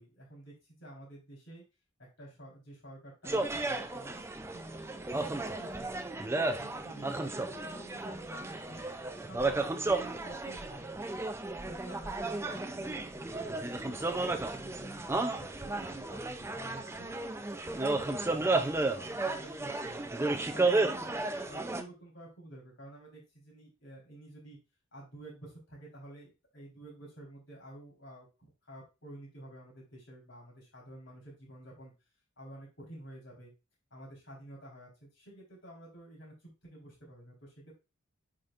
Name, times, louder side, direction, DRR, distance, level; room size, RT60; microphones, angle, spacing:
voice 1, 0.0-1.6 2.0-6.0 6.5-8.8 9.3-11.1 11.6-17.1 17.6-20.1 20.5-24.6 24.9-31.9 32.4-33.5 33.9-37.7, right 1 dB, 60° left, -3 dB, 4.0 m, -50 dB
sound 1, 3.2-21.8, right 2 dB, 10° right, 0.4 m, -33 dB
8.6 x 5.2 x 2.5 m, 0.28 s
head